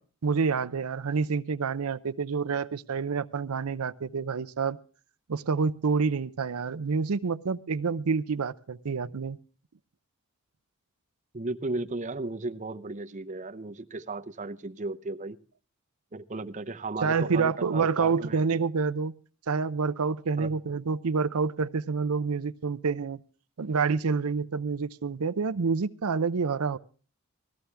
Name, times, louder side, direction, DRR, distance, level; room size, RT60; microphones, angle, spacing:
voice 1, 0.2-4.8 5.3-9.4 17.0-19.1 19.5-23.2 23.6-26.8, right 5 dB, 85° right, 0.6 m, -28 dB
voice 2, 11.3-15.4 16.1-18.4 20.4-20.5, right 2 dB, 35° right, 0.7 m, -35 dB
18.5 x 14.0 x 3.4 m
head